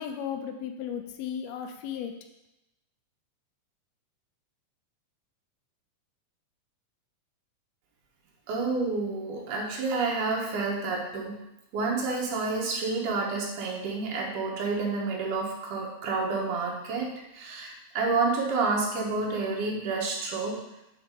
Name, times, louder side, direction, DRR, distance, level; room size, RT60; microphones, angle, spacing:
voice 1, 0.0-2.1, left 8 dB, 85° left, 5 dB, 1.5 m, -35 dB
voice 2, 8.5-11.4 11.7-20.6, right 3 dB, 80° right, -2 dB, 2.6 m, -29 dB
7.1 x 3.7 x 4.7 m, 0.92 s
omnidirectional pair, 3.7 m